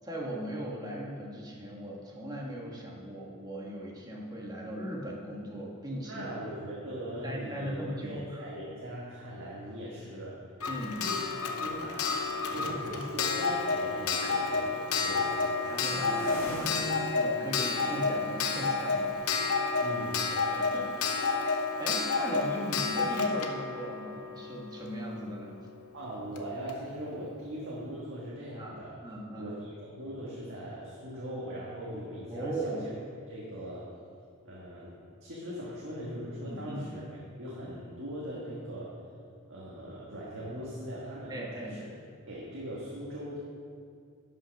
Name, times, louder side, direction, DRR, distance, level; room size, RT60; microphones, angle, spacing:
voice 1, 0.0-6.4 7.2-8.4 10.7-11.0 12.4-12.6 14.2-14.4 15.6-16.8 17.1-19.1 20.3-21.3 21.8-25.6 28.6-28.7 29.0-29.5 32.3-32.8 36.4-36.8 41.3-41.8, right 1 dB, 20° right, -3 dB, 1.5 m, -38 dB
voice 2, 6.0-10.4 11.0-12.1 12.5-15.3 19.8-20.2 25.9-29.0 29.4-32.9 33.3-33.9 34.4-34.9 35.2-38.9 39.5-41.9 42.3-43.4, equal, 60° right, -6 dB, 1.7 m, -40 dB
sound 1, 8.6-9.0 9.8-13.7 14.0-20.7, right 1 dB, 70° left, 2.5 m, -45 dB
Clock, 10.6-25.2 26.4-26.5 26.7-26.8, left 4 dB, 90° left, 0.8 m, -30 dB
12.5 x 5.8 x 5.2 m, 2.3 s
head